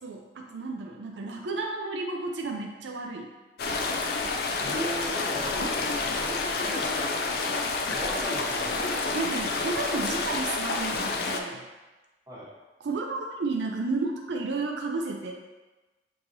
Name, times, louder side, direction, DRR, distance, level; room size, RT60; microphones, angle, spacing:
voice 1, 0.0-3.3 9.1-11.6 12.8-15.3, right 3 dB, 85° right, 2 dB, 0.4 m, -32 dB
sound 1, 3.6-11.4, left 3 dB, 60° left, 0.4 m, -29 dB
voice 2, 4.6-5.8 6.1-7.4 7.9-9.1 12.3-12.5, equal, 20° right, -8 dB, 1.3 m, -38 dB
6.0 x 2.9 x 2.6 m, 1.2 s
head